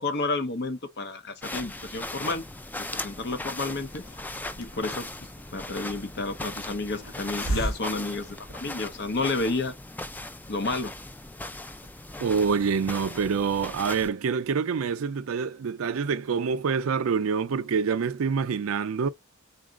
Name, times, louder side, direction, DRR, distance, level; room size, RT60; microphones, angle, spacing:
voice 1, 0.0-2.4 2.9-4.0 4.6-5.1 5.5-9.7 10.5-10.9, left 3 dB, 55° left, 0.8 m, -30 dB
sound 1, 1.4-14.1, left 2 dB, 10° left, 0.3 m, -38 dB
Hiss, 3.6-9.0, right 1 dB, 80° left, 1.2 m, -37 dB
voice 2, 12.2-19.1, right 5 dB, 80° right, 0.4 m, -26 dB
4.0 x 2.3 x 3.6 m
head